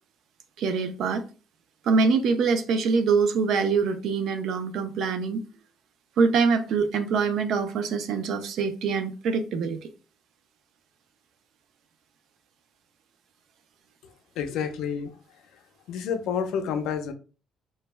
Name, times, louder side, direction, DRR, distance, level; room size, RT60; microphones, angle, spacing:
voice 1, 0.6-1.2 1.9-5.4 6.2-9.8, right 5 dB, 60° right, 0.3 m, -24 dB
voice 2, 14.4-15.1 15.9-17.1, left 7 dB, 85° left, 0.4 m, -29 dB
2.1 x 2.0 x 3.1 m
cardioid pair, 175°, 0 cm